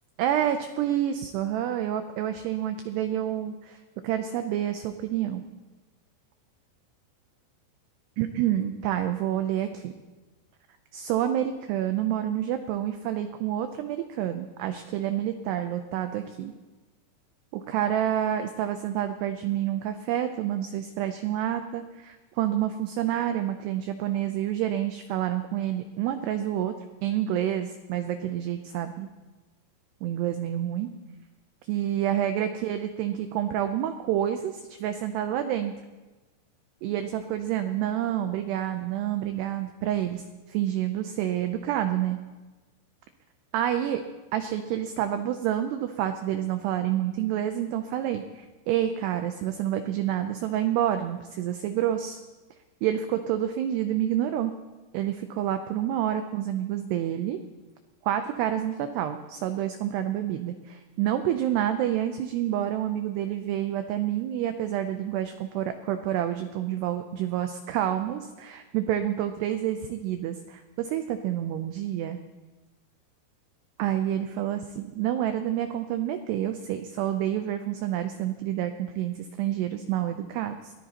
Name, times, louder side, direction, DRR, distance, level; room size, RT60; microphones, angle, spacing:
voice 1, 0.2-3.5 4.0-5.4 8.2-9.9 10.9-16.5 17.5-26.8 27.0-29.1 30.0-30.9 31.7-35.7 36.8-42.2 43.5-44.0 44.3-52.2 52.8-54.5 54.9-57.4 58.0-72.2 73.8-80.7, right 11 dB, 90° right, 8 dB, 2.3 m, -28 dB
23.0 x 17.5 x 2.9 m, 1.2 s
omnidirectional pair, 5.6 m